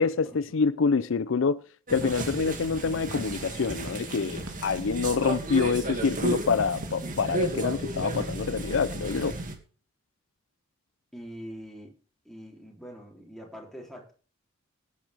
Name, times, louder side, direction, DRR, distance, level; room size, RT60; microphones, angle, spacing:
voice 1, 0.0-9.4, left 5 dB, 70° left, 0.5 m, -26 dB
sound 1, 1.9-9.6, right 2 dB, 40° right, 2.3 m, -33 dB
sound 2, 2.2-2.3 2.5-8.9, right 1 dB, 85° right, 2.1 m, -49 dB
voice 2, 2.8-3.3 11.1-11.9 12.2-14.1, equal, ahead, 3.3 m, -44 dB
18.5 x 9.1 x 3.5 m
head